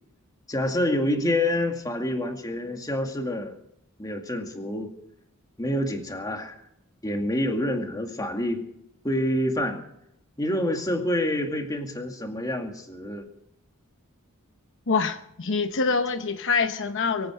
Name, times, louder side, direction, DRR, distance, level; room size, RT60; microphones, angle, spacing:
voice 1, 0.5-3.6 4.0-4.9 5.6-6.6 7.0-8.7 9.0-9.8 10.4-13.3, left 1 dB, 15° left, 3 dB, 2.2 m, -27 dB
voice 2, 14.9-17.3, left 4 dB, 60° left, 8 dB, 0.9 m, -25 dB
24.0 x 9.3 x 6.3 m, 0.79 s
head